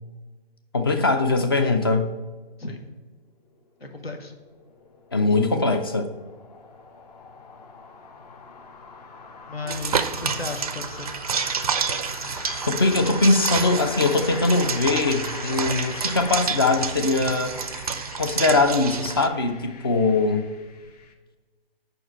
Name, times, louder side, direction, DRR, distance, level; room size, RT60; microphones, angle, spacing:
voice 1, 0.7-2.1 5.1-6.1 12.7-17.6 18.2-20.5, left 3 dB, 25° left, 6 dB, 0.4 m, -21 dB
sound 1, 3.5-21.1, left 4 dB, 40° left, 0.8 m, -42 dB
voice 2, 3.8-4.3 9.5-11.1, left 3 dB, 75° left, 5 dB, 1.3 m, -34 dB
sound 2, 9.7-19.3, right 6 dB, 40° right, 0.4 m, -29 dB
5.2 x 4.7 x 6.3 m, 1.3 s
figure-of-eight pair, 135°, 30 cm